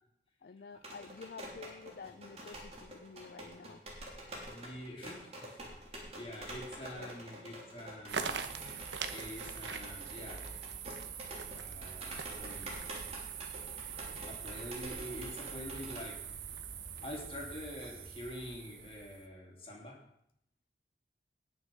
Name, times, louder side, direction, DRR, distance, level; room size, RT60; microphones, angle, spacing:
voice 1, 0.4-3.8 7.0-7.2, left 5 dB, 55° left, 11 dB, 0.4 m, -50 dB
sound 1, 0.7-16.1, right 1 dB, 35° right, 3.1 m, -48 dB
voice 2, 4.4-5.6 5.9-8.3 9.1-10.4 11.6-12.9 14.3-16.4 17.0-20.0, left 1 dB, 30° left, -1 dB, 3.1 m, -46 dB
sound 2, 8.1-19.3, right 6 dB, 75° right, 1.1 m, -43 dB
sound 3, 13.1-18.9, right 3 dB, 50° right, 1.0 m, -60 dB
19.0 x 6.5 x 5.3 m, 0.74 s
head